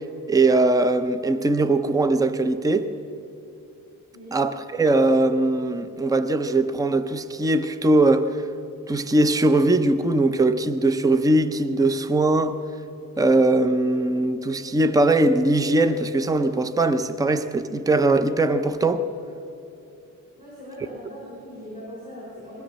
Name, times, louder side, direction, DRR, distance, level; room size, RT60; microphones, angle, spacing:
voice 1, 0.3-2.9 4.3-8.3 8.9-12.6 13.2-19.0, right 2 dB, 10° right, 0.5 m, -20 dB
voice 2, 20.4-22.6, equal, 25° right, 5.1 m, -40 dB
21.5 x 16.5 x 7.5 m
wide cardioid pair, 175°, 34 cm